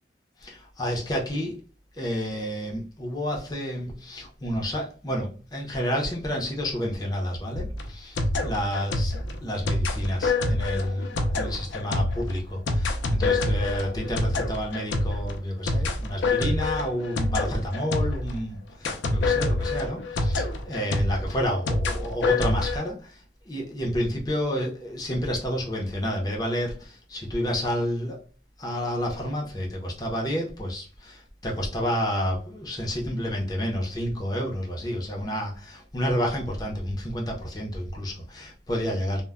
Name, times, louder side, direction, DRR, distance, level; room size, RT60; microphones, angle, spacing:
voice 1, 0.4-1.6 2.0-23.2 23.5-28.2 28.6-39.2, equal, 20° left, 0.6 m, -30 dB
sound 1, 7.5-18.4 18.8-22.8, left 2 dB, 75° left, 0.5 m, -26 dB
2.1 x 2.1 x 3.5 m
head